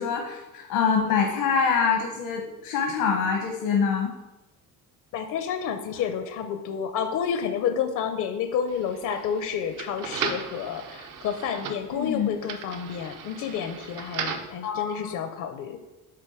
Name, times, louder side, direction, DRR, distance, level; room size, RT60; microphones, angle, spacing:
voice 1, 0.0-4.1 11.9-12.4 14.6-15.2, left 6 dB, 85° left, 1 dB, 1.0 m, -25 dB
voice 2, 5.1-15.8, left 7 dB, 65° left, 8 dB, 0.6 m, -30 dB
sound 1, 8.7-14.6, right 6 dB, 65° right, 0.8 m, -36 dB
7.5 x 3.7 x 4.8 m, 1.0 s
cardioid pair, 165°, 34 cm